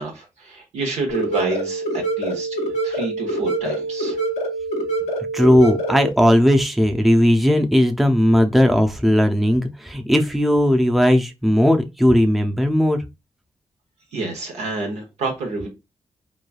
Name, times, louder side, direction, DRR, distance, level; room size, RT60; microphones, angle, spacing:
voice 1, 0.0-4.2 14.1-15.7, right 3 dB, 90° right, 0.9 m, -28 dB
sound 1, 1.1-6.1, right 2 dB, 85° left, 0.6 m, -25 dB
voice 2, 5.3-13.0, equal, ahead, 0.5 m, -17 dB
3.1 x 2.2 x 2.3 m
cardioid pair, 60°, 11 cm